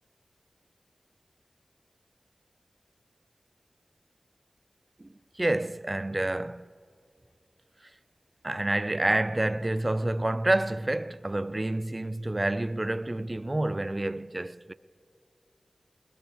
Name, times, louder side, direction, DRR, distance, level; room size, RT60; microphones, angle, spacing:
voice 1, 5.4-6.7 8.4-14.7, right 1 dB, 30° right, 0.3 m, -28 dB
21.5 x 20.5 x 2.9 m
wide cardioid pair, 70°, 0 cm